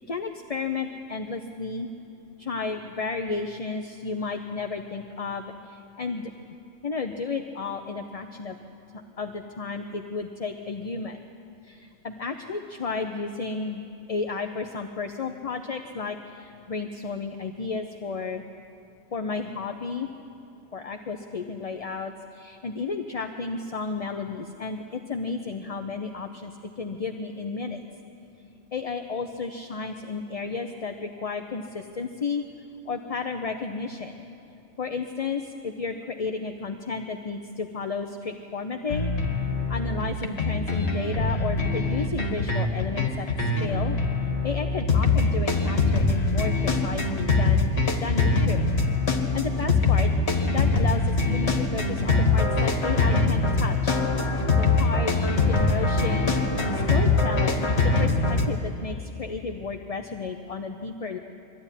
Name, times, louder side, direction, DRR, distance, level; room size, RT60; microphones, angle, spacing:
voice 1, 0.1-1.9 2.5-5.5 6.0-6.2 6.8-8.5 9.2-11.2 12.0-16.2 16.7-18.4 19.1-20.1 20.7-22.1 22.4-24.8 25.1-26.5 26.8-27.8 28.7-31.6 32.0-32.4 32.9-34.2 34.8-39.1 39.7-43.3 43.6-44.0 44.4-47.7 48.0-48.6 49.3-50.1 50.5-51.0 51.3-54.0 54.6-55.1 55.5-56.3 56.9-61.2, left 4 dB, 35° left, 5 dB, 0.7 m, -32 dB
sound 1, 38.9-58.5, left 3 dB, 55° left, 2.0 m, -23 dB
23.0 x 15.5 x 9.9 m, 2.7 s
omnidirectional pair, 1.3 m